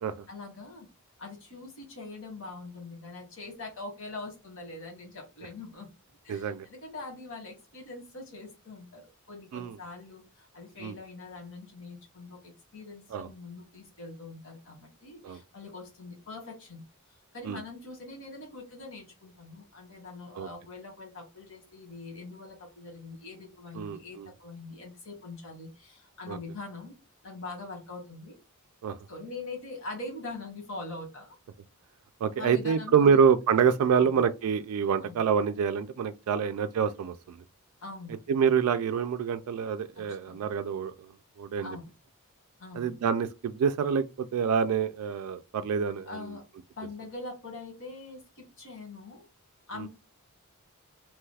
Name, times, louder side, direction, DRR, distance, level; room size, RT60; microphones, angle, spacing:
voice 1, 0.3-0.9 1.2-5.9 6.2-16.8 17.3-26.9 27.2-28.4 29.1-31.4 32.3-33.2 33.5-33.7 33.9-34.2 35.0-35.2 36.3-36.6 37.8-38.2 40.0-40.5 41.6-41.9 42.6-42.9 46.0-46.4 46.8-49.2 49.7-49.9, left 3 dB, 60° left, 1.3 m, -43 dB
voice 2, 6.3-6.7 9.5-9.8 10.8-11.0 13.1-13.3 15.2-15.4 17.5-17.6 20.4-20.5 23.8-24.3 26.3-26.4 28.8-29.0 32.2-37.4 38.3-40.9 41.4-41.8 42.7-46.3 49.8-49.9, right 6 dB, 80° right, 0.3 m, -26 dB
3.0 x 2.3 x 3.2 m
head